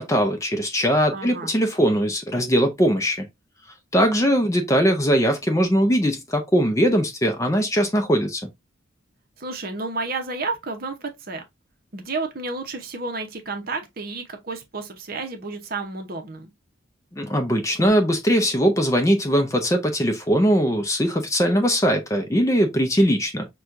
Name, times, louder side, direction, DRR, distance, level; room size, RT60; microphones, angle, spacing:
voice 1, 0.0-3.3 3.9-8.5 17.1-23.5, equal, 15° left, 0.5 m, -20 dB
voice 2, 1.1-1.5 9.4-11.4 11.9-16.5, right 3 dB, 45° right, 0.8 m, -31 dB
6.0 x 2.3 x 2.5 m
head